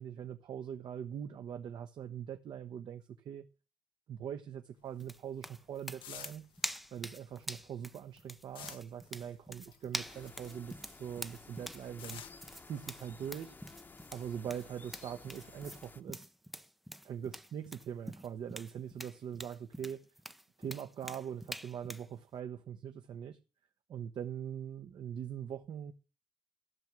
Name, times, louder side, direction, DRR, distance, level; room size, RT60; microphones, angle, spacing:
voice 1, 0.0-3.5 4.1-6.5 6.9-12.2 12.6-13.6 14.1-16.3 17.0-20.0 20.6-23.4 23.9-25.9, right 8 dB, 60° right, 1.0 m, -42 dB
sound 1, 4.8-10.8 11.1-14.5, left 10 dB, 80° left, 1.0 m, -54 dB
sound 2, 5.0-22.1, equal, ahead, 0.6 m, -45 dB
sound 3, 10.0-16.0, left 3 dB, 25° left, 1.0 m, -54 dB
15.0 x 6.0 x 7.6 m
cardioid pair, 125°, 8 cm